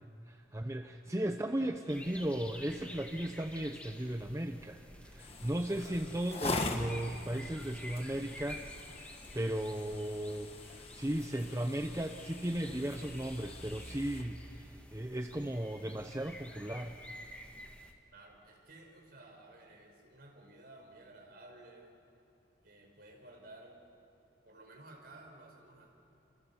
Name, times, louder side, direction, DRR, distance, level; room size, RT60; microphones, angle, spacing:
voice 1, 0.0-8.6 8.9-17.0, right 1 dB, 15° right, 5 dB, 0.8 m, -36 dB
sound 1, 1.9-17.9, left 1 dB, 5° left, 1.7 m, -51 dB
sound 2, 5.2-14.2, left 2 dB, 30° left, 1.7 m, -43 dB
voice 2, 5.8-6.1 18.1-22.0 22.6-23.9 24.4-25.9, right 2 dB, 55° right, 1 dB, 5.2 m, -55 dB
29.5 x 27.0 x 7.1 m, 2.7 s
head